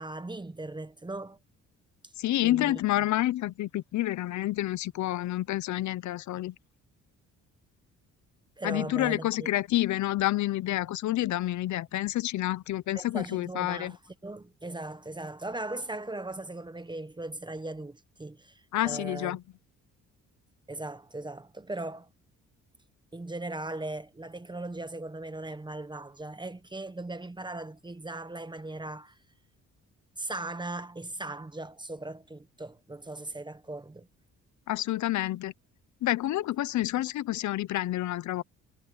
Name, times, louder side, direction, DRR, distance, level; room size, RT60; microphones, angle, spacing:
voice 1, 0.0-1.4 2.4-2.8 8.6-9.5 12.9-14.0 14.2-19.4 20.7-22.1 23.1-29.2 30.2-34.1, right 2 dB, 15° right, 1.2 m, -38 dB
voice 2, 2.2-6.5 8.6-13.9 18.7-19.4 34.7-35.5 36.0-38.4, left 15 dB, 70° left, 0.8 m, -29 dB
cardioid pair, 90°, 30 cm